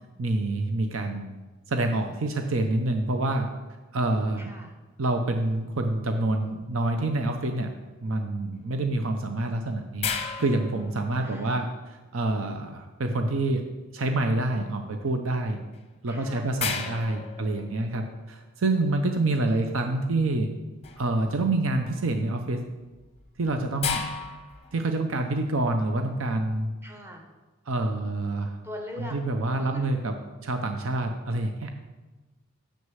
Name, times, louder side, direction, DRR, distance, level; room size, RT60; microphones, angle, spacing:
voice 1, 0.2-1.3 1.7-3.5 3.9-4.5 5.0-7.7 8.0-10.1 10.4-13.6 13.9-15.6 16.0-20.5 21.0-22.6 23.4-24.1 24.7-26.7 27.7-28.6 29.0-30.1 30.4-31.7, right 2 dB, 90° right, 5 dB, 0.7 m, -27 dB
voice 2, 4.4-4.7 11.2-11.7 16.1-16.5 19.4-19.6 26.8-27.2 28.6-29.1 29.6-29.8, left 1 dB, 10° right, 1 dB, 1.2 m, -41 dB
sound 1, 10.0-11.6 15.7-15.8 16.6-18.2 20.8-21.2 21.6-22.0 22.9-24.9, left 6 dB, 30° left, 0.7 m, -34 dB
6.7 x 6.4 x 7.5 m, 1.2 s
head